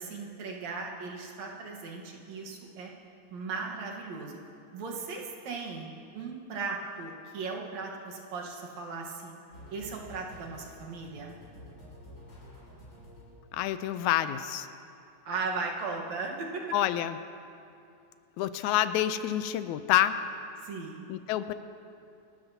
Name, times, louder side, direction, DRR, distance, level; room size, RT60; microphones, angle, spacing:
voice 1, 0.0-2.9 3.3-4.4 4.7-9.3 9.7-11.4 15.2-16.6 20.6-21.0, right 4 dB, 70° right, 0 dB, 2.5 m, -37 dB
sound 1, 9.5-13.7, left 1 dB, 45° left, 4.8 m, -50 dB
voice 2, 13.5-14.7 16.7-17.2 18.4-20.2 21.1-21.5, left 12 dB, 85° left, 11 dB, 2.0 m, -27 dB
27.0 x 12.5 x 2.8 m, 2.6 s
omnidirectional pair, 3.3 m